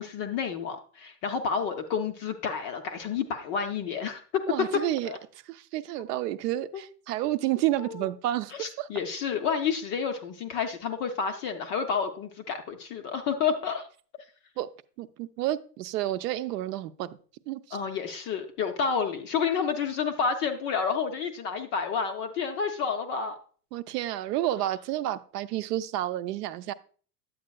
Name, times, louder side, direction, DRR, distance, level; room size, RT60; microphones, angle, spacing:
voice 1, 0.0-4.2 5.0-5.2 6.7-6.8 7.8-8.1 8.6-13.9 17.7-23.4, left 6 dB, 25° left, 6 dB, 0.3 m, -30 dB
voice 2, 4.5-5.1 5.5-8.9 14.6-14.7 15.0-17.2 17.5-17.8 23.7-26.7, right 14 dB, 75° right, 12 dB, 0.6 m, -30 dB
9.4 x 7.7 x 2.2 m, 0.42 s
supercardioid pair, 130°, 48 cm